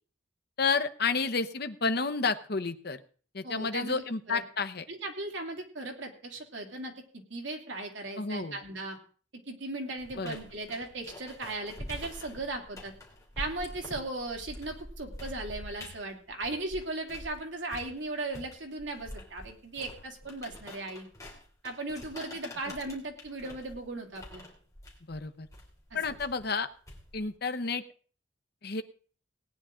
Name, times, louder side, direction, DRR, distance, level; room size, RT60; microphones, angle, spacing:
voice 1, 0.6-3.0 3.3-4.9 8.2-8.6 10.2-10.4 25.1-25.5 25.9-26.7 27.1-27.8 28.6-28.8, left 4 dB, 55° left, 9 dB, 0.9 m, -30 dB
voice 2, 3.4-4.4 4.9-9.0 9.5-12.9 13.4-21.1 21.6-24.4 25.9-26.2, right 2 dB, 65° right, 2 dB, 2.8 m, -37 dB
sound 1, 10.0-17.4 17.7-27.3, left 1 dB, 15° left, 3.3 m, -46 dB
18.5 x 9.9 x 3.8 m, 0.42 s
head